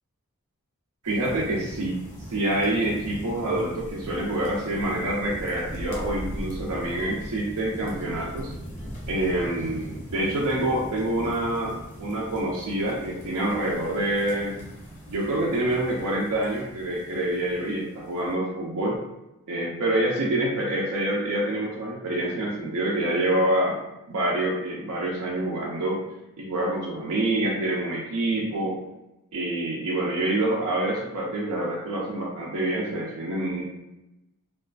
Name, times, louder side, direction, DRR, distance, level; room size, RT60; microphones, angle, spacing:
sound 1, 1.0-18.3, equal, 35° left, 0.6 m, -40 dB
voice 1, 1.0-2.0 2.3-8.5 9.1-14.6 15.1-19.0 19.5-23.8 24.1-26.0 26.4-28.8 29.3-33.6, right 1 dB, 85° right, -4 dB, 0.5 m, -26 dB
2.4 x 2.2 x 2.4 m, 0.94 s
head